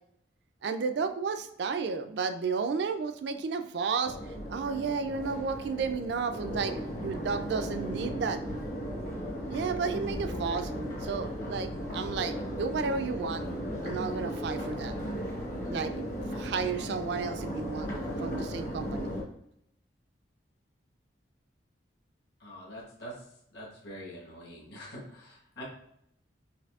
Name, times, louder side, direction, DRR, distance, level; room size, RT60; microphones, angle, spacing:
voice 1, 0.6-4.2 4.5-8.4 9.5-10.7 11.0-13.5 13.8-14.9 15.7-15.9 16.3-17.9 18.2-19.1, right 5 dB, 60° right, 8 dB, 0.3 m, -32 dB
Crowd, 4.1-19.2, equal, 40° left, 0.9 m, -36 dB
voice 2, 22.4-23.2 23.5-25.6, equal, 60° left, -4 dB, 1.2 m, -45 dB
5.8 x 2.6 x 2.3 m, 0.73 s
head